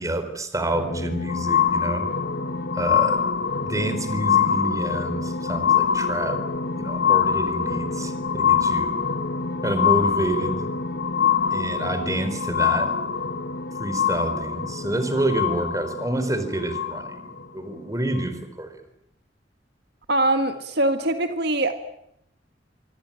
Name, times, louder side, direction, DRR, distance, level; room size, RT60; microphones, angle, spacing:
voice 1, 0.0-2.1 2.7-3.2 3.6-6.4 6.7-9.0 9.6-10.7 11.5-13.0 13.8-18.8, right 1 dB, 20° right, 10 dB, 4.1 m, -28 dB
sound 1, 0.6-17.4 18.2-18.3, left 6 dB, 60° left, 1.7 m, -24 dB
voice 2, 20.1-21.7, right 1 dB, 65° right, 7 dB, 1.8 m, -22 dB
25.5 x 24.5 x 8.9 m, 0.78 s
head